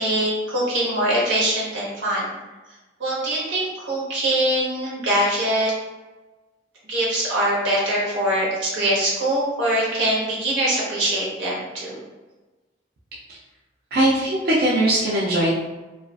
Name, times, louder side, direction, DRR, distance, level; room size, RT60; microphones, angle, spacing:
voice 1, 0.0-2.3 3.0-5.7 6.9-11.9, right 1 dB, 90° right, -6 dB, 1.0 m, -23 dB
voice 2, 13.9-15.5, right 1 dB, 50° right, -6 dB, 0.4 m, -20 dB
2.4 x 2.3 x 2.3 m, 1.2 s
head